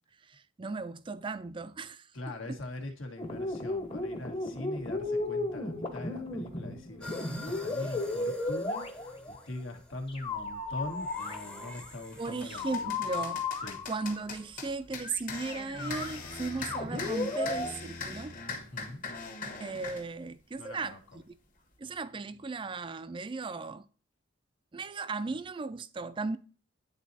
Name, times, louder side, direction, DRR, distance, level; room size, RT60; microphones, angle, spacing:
voice 1, 0.2-2.1 12.2-13.4 13.9-18.4 19.6-21.0 21.3-21.4 21.8-23.9 24.7-26.4, right 3 dB, 25° right, 0.4 m, -36 dB
voice 2, 2.1-13.2 13.6-13.8 18.7-19.0 20.6-21.0, left 2 dB, 70° left, 1.6 m, -42 dB
sound 1, 3.2-9.4 10.1-11.9 12.5-14.2 14.9-15.2 15.5-17.7, left 2 dB, 25° left, 1.0 m, -35 dB
sound 2, 7.0-12.8, left 1 dB, 5° left, 0.7 m, -49 dB
sound 3, 11.2-11.4 11.9-20.1, left 4 dB, 40° left, 1.3 m, -41 dB
10.5 x 4.0 x 2.7 m
head